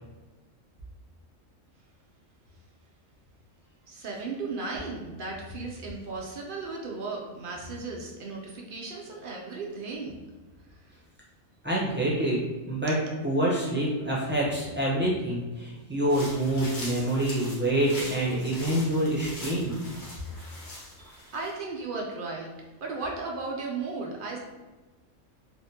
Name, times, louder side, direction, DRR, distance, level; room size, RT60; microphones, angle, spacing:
voice 1, 3.9-10.2 10.7-10.9 21.0-22.5 22.8-24.4, right 3 dB, 65° right, -1 dB, 0.5 m, -36 dB
voice 2, 11.6-12.4 12.7-12.9 13.2-19.8, right 1 dB, 10° right, -7 dB, 0.6 m, -26 dB
sound 1, 16.1-21.5, left 1 dB, 65° left, 1.4 m, -42 dB
3.5 x 2.5 x 2.8 m, 1.2 s
omnidirectional pair, 1.4 m